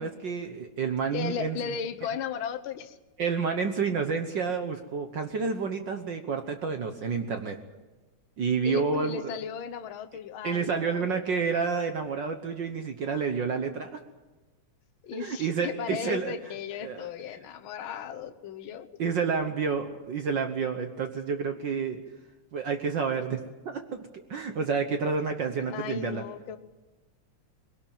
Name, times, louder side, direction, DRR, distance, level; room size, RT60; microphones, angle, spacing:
voice 1, 0.0-1.7 3.2-7.6 8.4-9.4 10.4-14.0 15.1-16.3 16.8-17.1 19.0-22.0 22.5-26.2, right 5 dB, 60° right, 7 dB, 1.2 m, -29 dB
voice 2, 1.1-3.0 8.6-11.0 15.0-18.9 25.7-26.6, left 7 dB, 60° left, 8 dB, 1.5 m, -36 dB
21.5 x 18.0 x 9.0 m, 1.2 s
omnidirectional pair, 3.3 m